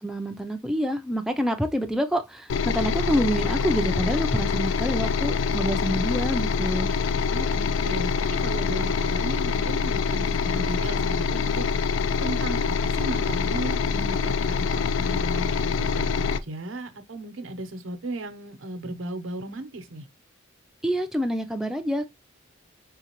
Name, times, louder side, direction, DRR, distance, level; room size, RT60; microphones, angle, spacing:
voice 1, 0.0-6.9 20.8-22.1, equal, 5° right, 0.4 m, -27 dB
sound 1, 2.5-16.4, left 5 dB, 75° left, 0.3 m, -25 dB
voice 2, 7.3-8.1 8.4-11.7 12.2-20.0, right 1 dB, 85° right, 0.8 m, -35 dB
3.9 x 3.7 x 2.9 m
head